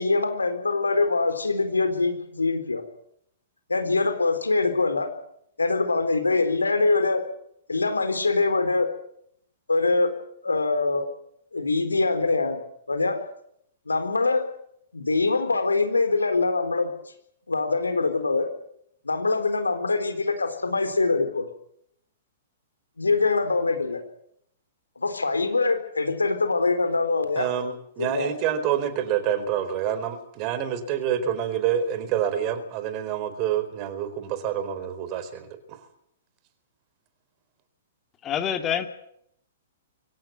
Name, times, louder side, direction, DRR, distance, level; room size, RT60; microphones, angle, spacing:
voice 1, 0.0-2.8 3.7-5.1 5.6-7.2 7.7-8.9 9.7-10.1 10.4-11.1 11.5-12.6 12.9-13.2 13.9-14.5 14.9-17.1 17.5-18.5 19.0-21.5 23.0-24.0 25.0-27.5 28.0-28.3, left 3 dB, 75° left, 8 dB, 4.1 m, -23 dB
voice 2, 27.4-35.8, right 9 dB, 35° right, 11 dB, 4.3 m, -27 dB
voice 3, 38.2-38.9, left 9 dB, 20° left, 6 dB, 2.5 m, -26 dB
24.5 x 16.5 x 9.6 m, 0.73 s
figure-of-eight pair, 110°, 0 cm